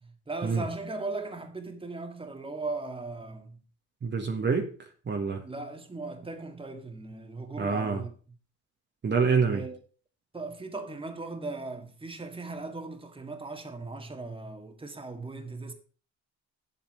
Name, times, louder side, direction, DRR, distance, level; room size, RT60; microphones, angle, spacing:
voice 1, 0.0-3.6 5.4-8.1 9.5-9.8 10.3-15.7, right 3 dB, 15° right, 1.9 m, -38 dB
voice 2, 4.0-4.7 5.1-5.4 7.6-8.0 9.0-9.6, right 5 dB, 35° right, 1.7 m, -26 dB
8.6 x 7.9 x 5.7 m
cardioid pair, 90°, 30 cm